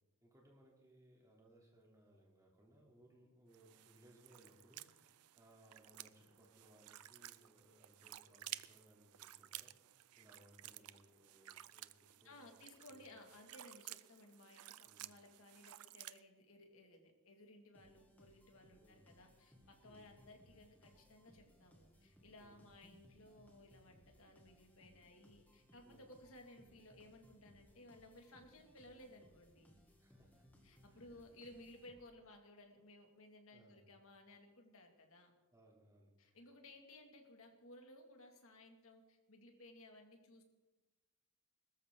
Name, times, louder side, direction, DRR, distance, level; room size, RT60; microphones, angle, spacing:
voice 1, 0.2-12.6 12.9-13.2 14.8-15.1 18.8-19.1 19.9-20.1 22.4-22.6 25.8-26.1 30.0-30.5 30.9-31.2 33.5-33.8 35.5-36.5, right 1 dB, 15° right, -2 dB, 3.1 m, -67 dB
sound 1, 3.5-16.2, right 15 dB, 80° right, 0.5 m, -54 dB
voice 2, 12.2-29.7 30.6-35.3 36.2-40.4, left 1 dB, 65° left, 3 dB, 2.3 m, -59 dB
sound 2, 17.7-32.3, equal, 10° left, 2.1 m, -67 dB
20.5 x 14.0 x 3.8 m, 1.1 s
head